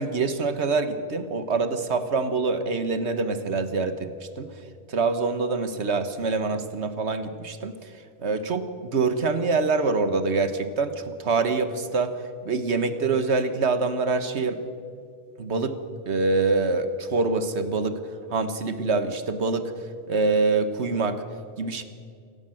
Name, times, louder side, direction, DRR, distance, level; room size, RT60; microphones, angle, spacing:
voice 1, 0.0-4.5 4.9-7.9 8.2-8.7 8.9-12.1 12.5-14.6 15.4-15.8 16.1-18.0 18.3-19.7 20.1-21.2 21.6-21.8, right 4 dB, 85° right, 10 dB, 1.6 m, -25 dB
28.5 x 14.5 x 7.8 m, 2.3 s
omnidirectional pair, 1.1 m